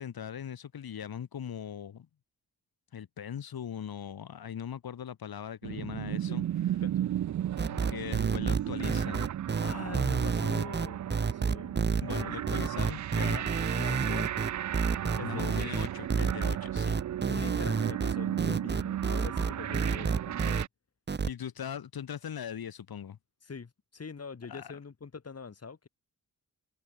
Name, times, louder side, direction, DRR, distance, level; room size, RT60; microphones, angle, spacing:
voice 1, 0.0-2.1 2.9-6.8 7.7-9.3 12.0-13.5 13.8-14.3 15.2-17.0 21.3-23.2 24.5-24.7, left 8 dB, 85° left, 2.7 m, -40 dB
sound 1, 5.6-20.7, right 11 dB, 55° right, 0.4 m, -35 dB
sound 2, 7.6-20.6 21.1-21.3, right 5 dB, 30° right, 0.9 m, -29 dB
voice 2, 9.6-11.8 12.1-12.3 15.2-15.7 17.3-20.6 23.4-25.9, left 5 dB, 45° left, 5.2 m, -43 dB
wide cardioid pair, 135°, 35 cm